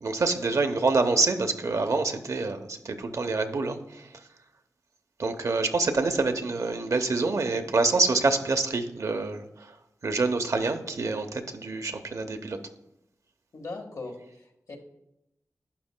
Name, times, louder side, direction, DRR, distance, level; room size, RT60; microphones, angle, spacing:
voice 1, 0.0-4.1 5.2-9.7 10.0-12.6, right 3 dB, 65° right, 6 dB, 0.8 m, -26 dB
voice 2, 13.5-14.8, left 3 dB, 70° left, 2 dB, 1.5 m, -39 dB
11.5 x 9.6 x 2.2 m, 0.86 s
wide cardioid pair, 90°, 6 cm